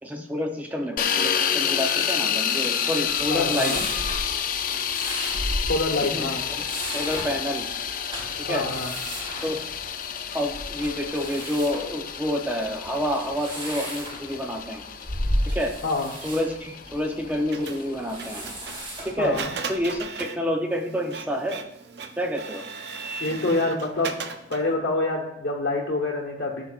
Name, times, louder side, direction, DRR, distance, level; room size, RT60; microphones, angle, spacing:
voice 1, 0.0-3.8 6.0-6.3 6.6-6.7 6.9-7.6 8.5-8.7 9.4-9.6 10.3-14.8 15.5-15.7 16.2-18.5 19.0-19.4 19.7-21.6 22.2-22.6, equal, 10° right, 3 dB, 0.6 m, -28 dB
sound 1, 1.0-18.9, left 8 dB, 50° left, 0.4 m, -29 dB
sound 2, 3.1-20.0, equal, 30° right, 3.0 m, -35 dB
voice 2, 3.3-3.8 5.7-6.4 8.5-8.9 15.8-16.1 19.2-19.5 23.2-24.1 24.5-26.7, left 2 dB, 70° left, -3 dB, 1.1 m, -26 dB
Printer, 17.5-24.7, right 5 dB, 60° right, 0.6 m, -37 dB
13.5 x 5.7 x 2.4 m, 0.80 s
head